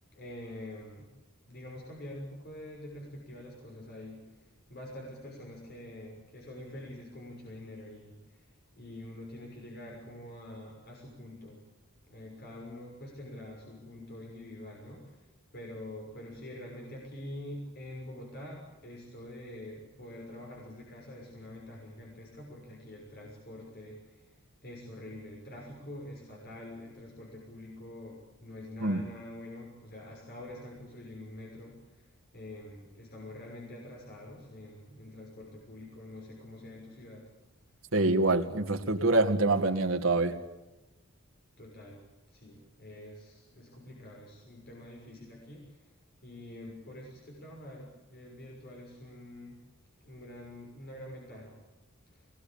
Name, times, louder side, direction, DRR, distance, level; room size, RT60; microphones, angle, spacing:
voice 1, 0.1-1.1 1.4-8.5 8.8-11.6 12.1-15.3 15.5-24.3 24.6-31.8 32.3-37.2 41.6-42.0 42.3-45.6 46.2-49.6 50.0-51.6 52.1-52.3, left 1 dB, 50° left, -1 dB, 6.2 m, -46 dB
voice 2, 37.9-40.3, right 2 dB, 75° right, 5 dB, 2.2 m, -25 dB
24.5 x 20.0 x 8.8 m, 1.0 s
head